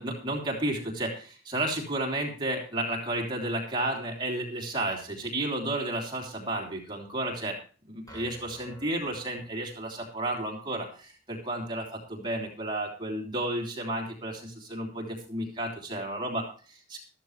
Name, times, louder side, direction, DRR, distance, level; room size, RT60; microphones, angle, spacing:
voice 1, 0.0-7.6 7.9-17.0, right 1 dB, 25° right, 0 dB, 3.2 m, -32 dB
sound 1, 8.1-10.0, right 1 dB, 20° left, 6.5 m, -51 dB
14.5 x 14.0 x 3.3 m, 0.39 s
head